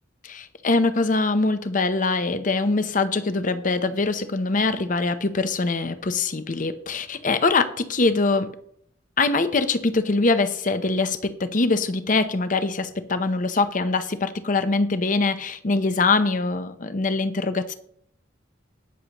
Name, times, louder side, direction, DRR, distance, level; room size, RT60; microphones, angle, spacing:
voice 1, 0.2-8.5 9.2-17.7, left 3 dB, 40° left, 10 dB, 0.7 m, -23 dB
18.5 x 6.7 x 3.0 m, 0.67 s
head